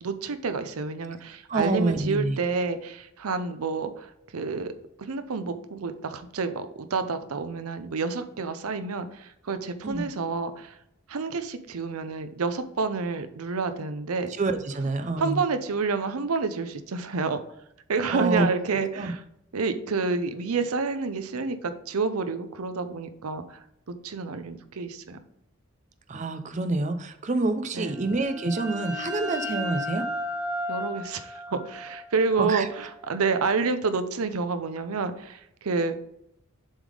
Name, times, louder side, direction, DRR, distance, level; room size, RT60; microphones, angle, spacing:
voice 1, 0.0-4.7 5.0-10.8 11.1-14.3 15.0-17.4 17.9-19.2 19.5-23.6 24.0-25.2 27.7-27.9 30.7-36.0, right 4 dB, 85° right, 10 dB, 0.6 m, -29 dB
voice 2, 1.5-2.4 9.8-10.1 14.4-15.4 18.1-18.5 18.7-19.1 26.1-30.0 32.4-32.7, right 2 dB, 35° right, 9 dB, 0.5 m, -27 dB
sound 1, 27.9-33.4, equal, 5° right, 1.4 m, -35 dB
7.3 x 3.6 x 4.8 m, 0.78 s
head